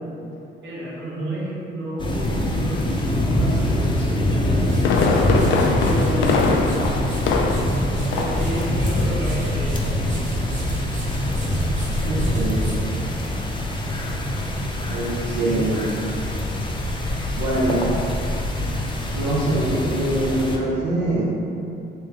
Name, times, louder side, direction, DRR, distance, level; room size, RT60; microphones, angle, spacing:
voice 1, 0.6-7.0 8.1-10.3 15.2-15.9, right 1 dB, 70° right, -7 dB, 1.2 m, -31 dB
sound 1, 2.0-20.6, left 1 dB, 25° left, 0.6 m, -24 dB
Fireworks, 4.4-7.8 8.1-8.5 8.8-8.9, left 4 dB, 75° left, 0.4 m, -22 dB
sound 2, 4.4-13.7, equal, 35° right, 0.8 m, -34 dB
voice 2, 12.1-12.7 14.9-15.9 17.3-17.9 19.1-21.2, right 1 dB, 85° right, -9 dB, 0.7 m, -23 dB
3.3 x 3.1 x 3.4 m, 2.7 s
cardioid pair, 90°, 20 cm